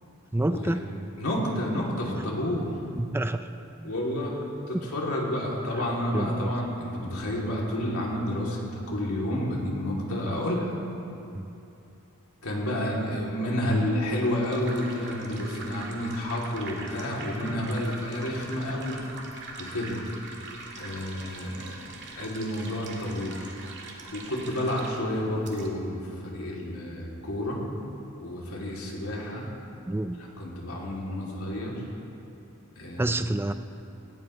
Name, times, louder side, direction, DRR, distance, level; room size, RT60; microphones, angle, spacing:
voice 1, 0.3-0.8 3.0-3.4 3.8-3.9 5.7-5.9 6.1-6.5 11.3-11.5 13.7-13.9 29.9-30.2 33.0-33.5, right 1 dB, 10° right, 9 dB, 0.4 m, -28 dB
voice 2, 1.2-2.7 3.8-4.3 4.7-10.7 12.4-19.0 19.6-20.0 20.7-21.8 22.1-23.5 24.1-27.6 28.2-29.4 30.2-31.8 32.8-33.1, left 1 dB, 80° left, -3 dB, 3.0 m, -30 dB
sound 1, 14.2-25.7, right 2 dB, 55° right, 1.9 m, -42 dB
18.5 x 17.5 x 3.2 m, 2.8 s
head